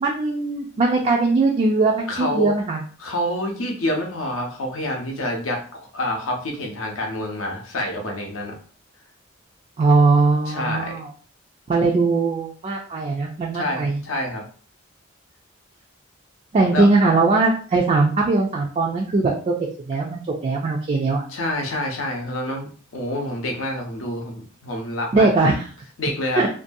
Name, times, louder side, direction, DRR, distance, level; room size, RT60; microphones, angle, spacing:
voice 1, 0.0-2.8 9.8-11.1 11.7-14.0 16.5-19.5 19.9-21.2 25.1-25.7 26.4-26.5, right 3 dB, 30° right, -1 dB, 0.3 m, -20 dB
voice 2, 2.1-2.5 3.0-8.5 10.5-10.9 13.5-14.4 16.7-16.9 21.3-25.3 26.0-26.5, left 1 dB, 70° left, 2 dB, 0.6 m, -27 dB
2.5 x 2.2 x 2.5 m, 0.42 s
head